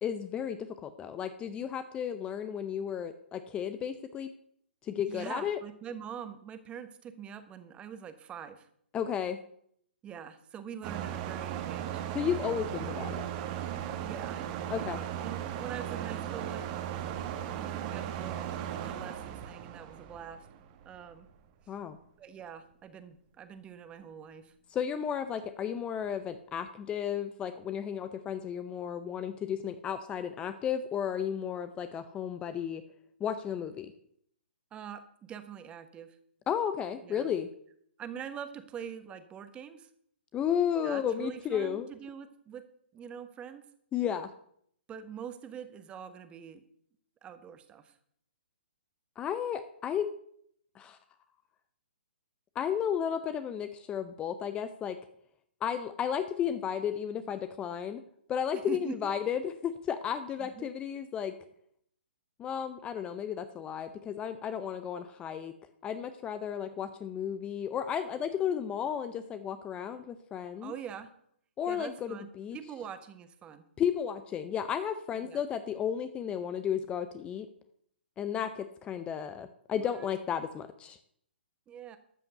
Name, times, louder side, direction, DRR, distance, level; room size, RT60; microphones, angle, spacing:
voice 1, 0.0-4.3 4.8-5.6 8.9-9.4 12.1-13.3 14.7-15.0 21.7-22.0 24.7-32.8 33.2-33.9 36.5-37.5 40.3-41.9 43.9-44.3 49.2-50.1 50.8-51.0 52.6-55.0 55.6-58.0 58.3-61.4 62.4-65.5 65.8-70.7 71.6-72.6 73.8-77.5 78.2-81.0, left 8 dB, 15° left, 11 dB, 0.6 m, -33 dB
voice 2, 5.1-8.7 10.0-12.0 14.0-20.5 20.8-21.3 22.2-24.5 34.7-36.2 37.0-37.3 38.0-39.9 40.8-42.6 42.9-43.7 44.9-46.6 47.2-47.9 58.5-59.1 60.4-60.7 70.6-71.1 71.7-73.6 75.2-75.4 79.8-80.1 81.7-82.0, right 8 dB, 15° right, 10 dB, 1.1 m, -44 dB
sound 1, 10.8-21.0, right 10 dB, 35° right, 1.4 m, -37 dB
13.0 x 5.7 x 8.0 m, 0.67 s
hypercardioid pair, 135°, 6 cm